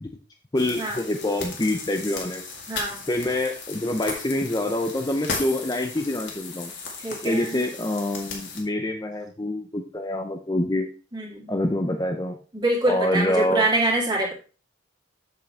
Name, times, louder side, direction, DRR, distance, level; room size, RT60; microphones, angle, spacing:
sound 1, 0.5-8.6, left 4 dB, 60° left, 2.1 m, -36 dB
voice 1, 0.5-2.4 3.1-6.7 7.2-10.9 11.5-12.4 12.9-13.7, left 1 dB, 20° left, 5 dB, 0.6 m, -26 dB
voice 2, 2.7-3.0 7.0-7.6 11.1-11.5 12.5-14.3, right 1 dB, 20° right, -2 dB, 2.5 m, -25 dB
7.7 x 7.5 x 3.4 m, 0.36 s
head